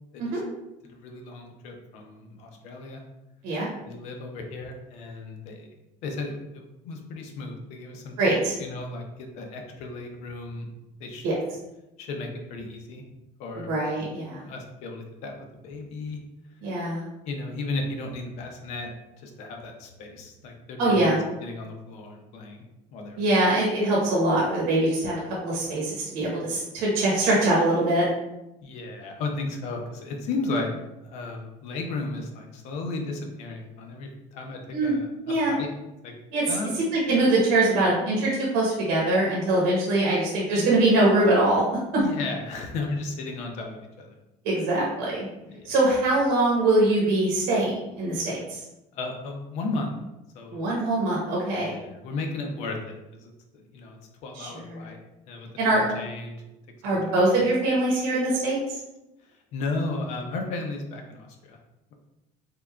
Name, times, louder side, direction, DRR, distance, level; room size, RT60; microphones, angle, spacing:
voice 1, 0.9-3.0 3.8-5.7 6.0-10.7 11.0-11.3 12.0-13.0 13.4-13.7 14.3-16.2 17.3-18.9 19.2-22.6 22.9-23.2 28.6-30.7 31.0-35.7 36.0-36.1 36.5-36.7 41.9-44.2 45.5-45.7 49.0-50.0 50.3-50.7 51.5-52.9 53.2-55.0 55.3-56.4 56.8-57.1 59.2-61.6, left 3 dB, 55° left, 3 dB, 0.6 m, -35 dB
voice 2, 8.2-8.5 11.2-11.4 13.7-14.4 16.6-17.0 20.8-21.2 23.2-28.1 34.7-34.9 35.2-35.5 36.3-36.6 36.9-41.6 44.4-45.3 45.6-48.6 50.5-51.8 54.3-54.8 55.6-56.0 56.8-58.6, right 2 dB, 85° right, -5 dB, 1.0 m, -23 dB
3.7 x 3.3 x 2.3 m, 0.95 s
cardioid pair, 175°, 14 cm